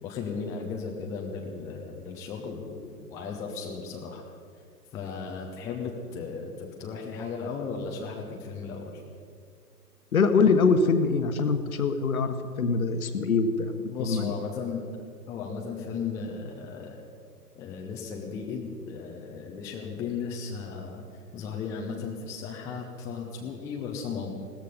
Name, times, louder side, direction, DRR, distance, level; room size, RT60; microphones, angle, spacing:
voice 1, 0.0-4.3 4.9-9.0 13.9-14.9 15.3-17.0 17.5-21.0 21.3-24.3, left 5 dB, 5° left, 0 dB, 0.6 m, -36 dB
voice 2, 10.1-13.7 14.0-14.3, left 4 dB, 60° left, 8 dB, 1.4 m, -23 dB
16.5 x 13.5 x 5.3 m, 2.1 s
figure-of-eight pair, 115°, 48 cm